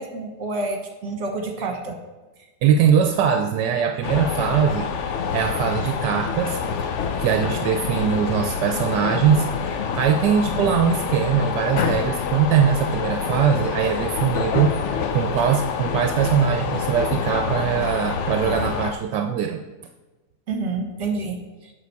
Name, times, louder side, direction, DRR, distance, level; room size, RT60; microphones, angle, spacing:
voice 1, 0.0-1.9 20.5-21.4, right 3 dB, 45° right, 3 dB, 1.5 m, -28 dB
voice 2, 2.6-4.9 5.3-6.9 7.2-19.6, right 8 dB, 80° right, 5 dB, 1.2 m, -21 dB
sound 1, 4.0-18.9, left 6 dB, 65° left, 0.7 m, -27 dB
8.2 x 5.7 x 4.7 m, 1.1 s
omnidirectional pair, 1.9 m